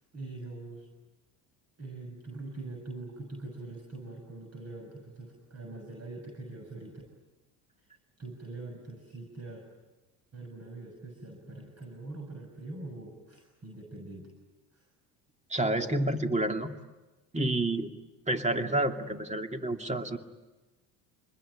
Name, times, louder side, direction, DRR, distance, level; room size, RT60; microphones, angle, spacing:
voice 1, 0.1-0.9 1.8-7.0 7.8-7.9 8.2-9.6 10.3-14.3 14.7-14.9, right 2 dB, 30° right, 2 dB, 6.8 m, -43 dB
voice 2, 15.5-16.7 17.3-17.9 18.3-20.2, right 1 dB, 15° right, 5 dB, 2.5 m, -29 dB
27.0 x 21.5 x 9.9 m, 1.1 s
supercardioid pair, 85°, 48 cm